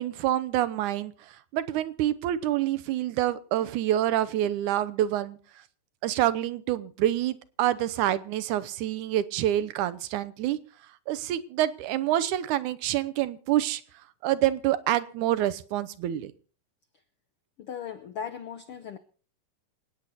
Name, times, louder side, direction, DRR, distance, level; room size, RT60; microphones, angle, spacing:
voice 1, 0.0-5.4 6.0-10.6 11.1-13.8 14.2-16.3, right 13 dB, 75° right, 2.1 m, -27 dB
voice 2, 17.6-19.0, left 8 dB, 75° left, 1.3 m, -37 dB
27.0 x 9.3 x 4.2 m
omnidirectional pair, 3.8 m